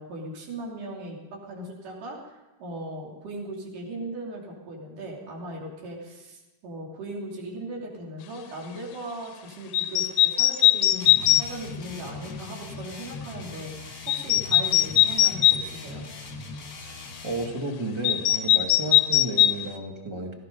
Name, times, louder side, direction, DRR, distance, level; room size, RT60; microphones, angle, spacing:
voice 1, 0.0-16.1, right 1 dB, 70° right, -1 dB, 4.5 m, -38 dB
sound 1, 9.7-11.5 14.1-15.6 18.0-19.6, left 14 dB, 70° left, 2.0 m, -20 dB
sound 2, 11.0-17.6, left 3 dB, 35° left, 1.7 m, -40 dB
voice 2, 17.2-20.3, right 2 dB, 15° right, 2 dB, 0.9 m, -32 dB
17.5 x 14.5 x 5.3 m, 1.1 s
omnidirectional pair, 3.9 m